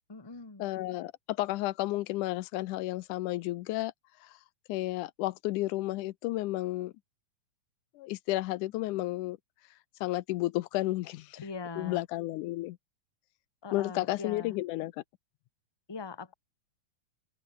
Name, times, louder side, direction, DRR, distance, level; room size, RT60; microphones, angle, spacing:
voice 1, 0.1-0.7 11.4-12.0 13.6-14.6 15.9-16.3, left 4 dB, 10° left, 1.3 m, -41 dB
voice 2, 0.6-3.9 4.2-4.4 4.7-6.9 8.0-9.4 10.0-11.4 11.8-12.8 13.7-14.9, left 17 dB, 85° left, 2.2 m, -32 dB
omnidirectional pair, 3.5 m